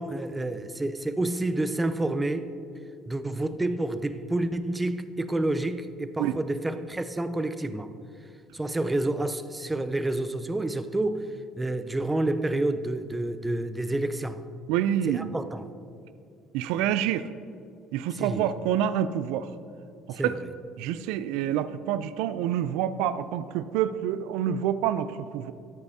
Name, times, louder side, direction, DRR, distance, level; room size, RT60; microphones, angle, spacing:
voice 1, 0.0-2.5 3.1-7.9 8.5-11.2 11.6-14.4 15.1-15.7 18.1-18.5 20.2-20.4, right 2 dB, 10° right, 0.4 m, -29 dB
voice 2, 14.7-15.3 16.5-17.2 17.9-19.5 20.1-20.3 20.8-25.5, right 10 dB, 90° right, 0.3 m, -27 dB
13.0 x 8.1 x 2.7 m
cardioid pair, 135°, 0 cm